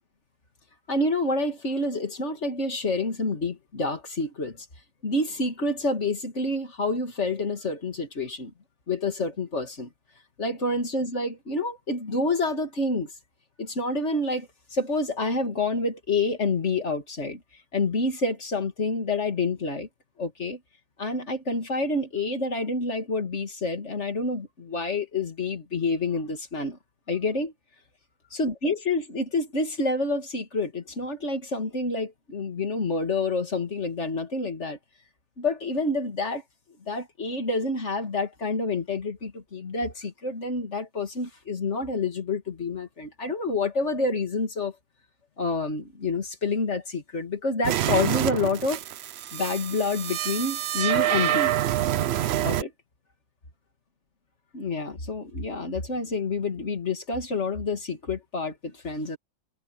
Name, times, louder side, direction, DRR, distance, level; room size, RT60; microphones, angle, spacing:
voice 1, 0.9-4.7 5.0-8.5 8.9-9.9 10.4-13.1 13.6-17.4 17.7-19.9 20.2-20.6 21.0-26.8 27.1-27.5 28.3-34.8 35.4-36.4 36.9-44.7 45.4-48.8 49.3-51.5 52.4-52.7 54.5-59.2, left 3 dB, 45° left, 2.8 m, -28 dB
sound 1, 47.6-52.6, right 12 dB, 70° right, 0.6 m, -26 dB
omnidirectional pair, 1.7 m